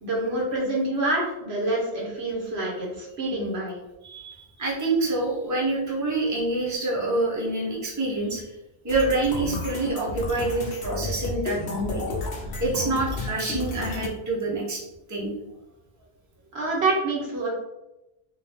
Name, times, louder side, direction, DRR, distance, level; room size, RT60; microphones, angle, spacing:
voice 1, 0.0-3.8 16.5-17.5, right 2 dB, 80° right, -3 dB, 1.4 m, -27 dB
voice 2, 4.0-8.5 8.8-12.0 12.6-14.8 15.1-15.3, right 2 dB, 20° right, -4 dB, 0.8 m, -26 dB
sound 1, 8.9-14.1, left 2 dB, 80° left, 1.1 m, -32 dB
3.7 x 2.6 x 3.4 m, 0.93 s
omnidirectional pair, 1.1 m